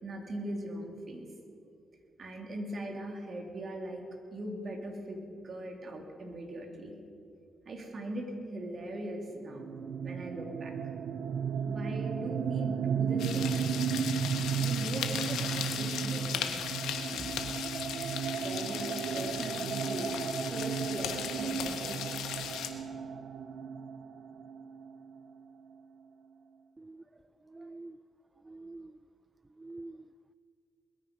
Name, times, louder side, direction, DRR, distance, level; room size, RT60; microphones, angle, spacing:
voice 1, 0.0-1.3 2.2-6.9 7.6-8.3 8.5-9.7 10.0-10.7 11.7-13.7 14.6-16.6 17.1-17.5 18.4-20.1 20.5-22.2, right 1 dB, 50° right, 2 dB, 2.8 m, -40 dB
sound 1, 9.5-25.1, right 7 dB, 70° right, 0.6 m, -34 dB
sound 2, 13.2-22.7, left 9 dB, 80° left, 1.1 m, -37 dB
voice 2, 27.5-28.0 28.5-28.9 29.6-30.0, right 2 dB, 30° right, 15 dB, 0.3 m, -46 dB
21.0 x 9.7 x 5.3 m, 2.4 s
supercardioid pair, 50°, 0 cm